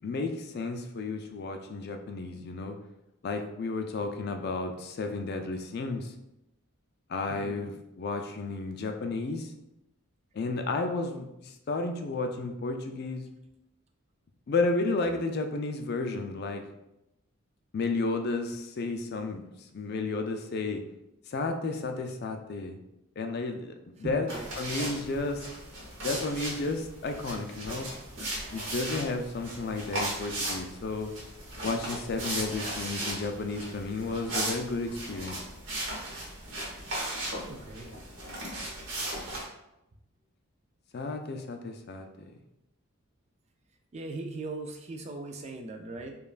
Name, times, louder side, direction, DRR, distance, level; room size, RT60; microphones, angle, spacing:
voice 1, 0.0-2.8 3.2-6.1 7.1-9.5 10.3-13.2 14.5-16.6 17.7-19.4 19.7-20.8 21.3-22.8 23.2-23.7 24.0-24.3 24.6-25.5 26.0-27.9 28.5-31.1 31.6-35.4 40.9-42.1, left 3 dB, 50° left, 5 dB, 0.3 m, -32 dB
voice 2, 7.3-7.7 24.0-24.5 37.5-37.9 43.9-46.2, right 2 dB, 30° right, 4 dB, 0.3 m, -39 dB
sound 1, 24.3-39.4, right 1 dB, 60° right, 1.1 m, -37 dB
5.1 x 2.3 x 2.4 m, 0.88 s
head